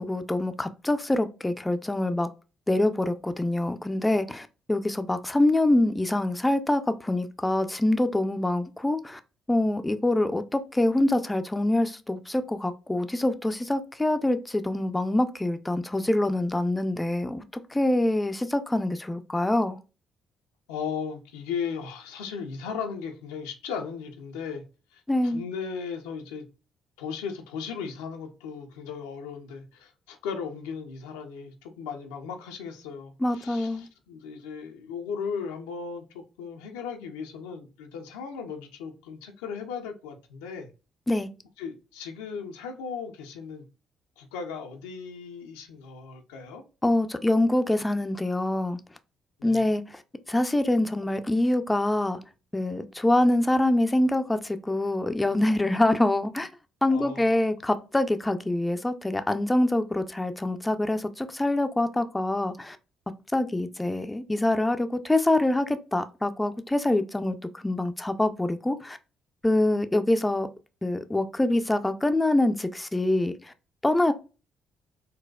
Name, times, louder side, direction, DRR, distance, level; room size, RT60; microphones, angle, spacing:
voice 1, 0.0-2.3 2.7-9.2 9.5-17.4 17.7-19.8 25.1-25.4 33.2-33.9 41.1-41.3 46.8-48.8 49.4-50.0 50.3-52.2 52.5-56.5 56.8-62.8 63.3-67.4 67.6-69.0 69.4-70.5 70.8-73.3 73.8-74.1, left 1 dB, 15° left, 0.4 m, -25 dB
voice 2, 20.7-24.6 24.9-26.5 27.0-40.7 41.6-43.6 44.2-46.6 49.4-49.7 56.9-57.4, left 6 dB, 85° left, 0.5 m, -36 dB
4.0 x 2.2 x 2.3 m
hypercardioid pair, 55°, 0 cm